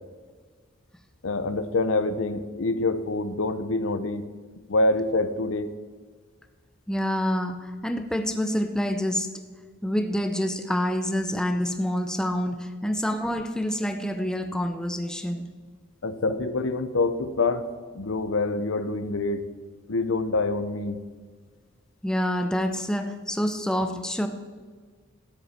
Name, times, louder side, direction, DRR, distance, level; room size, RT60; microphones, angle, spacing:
voice 1, 1.2-4.3 4.7-5.7 16.0-17.7 17.9-19.5 19.9-21.0, left 2 dB, 90° left, 12 dB, 0.7 m, -26 dB
voice 2, 6.9-9.3 9.8-15.5 16.3-16.4 22.0-24.3, equal, 5° left, 7 dB, 0.6 m, -27 dB
13.0 x 9.7 x 4.4 m, 1.5 s
head